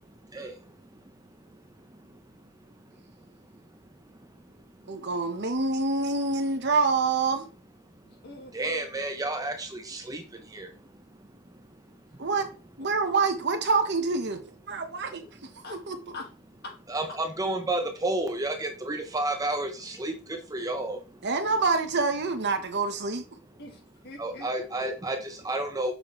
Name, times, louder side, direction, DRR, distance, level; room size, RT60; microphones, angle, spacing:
voice 1, 0.3-2.5 3.3-3.4 3.7-3.8 4.1-4.4 4.8-5.0 8.5-12.3 15.6-15.7 16.9-21.3 24.2-25.9, right 2 dB, 15° right, 0.7 m, -33 dB
voice 2, 4.9-7.5 12.2-12.5 12.8-14.4 14.7-15.2 15.9-16.0 21.2-23.2, right 4 dB, 50° right, 1.1 m, -26 dB
voice 3, 8.0-8.9 15.6-15.8 16.1-16.3 16.6-16.8 21.3-21.6 23.6-24.5, left 2 dB, 50° left, 1.9 m, -44 dB
6.6 x 5.8 x 3.2 m
head